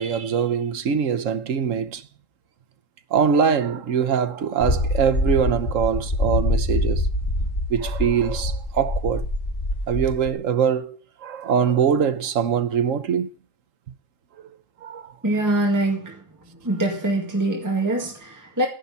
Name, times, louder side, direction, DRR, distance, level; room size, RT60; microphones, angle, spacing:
voice 1, 0.0-2.1 3.1-7.1 7.7-9.2 9.9-13.3 14.8-15.1, right 7 dB, 80° right, 1.3 m, -23 dB
sound 1, 4.6-10.3, left 1 dB, 60° left, 3.2 m, -25 dB
voice 2, 15.2-18.7, right 1 dB, 15° right, 2.0 m, -24 dB
11.0 x 10.5 x 5.5 m
omnidirectional pair, 1.3 m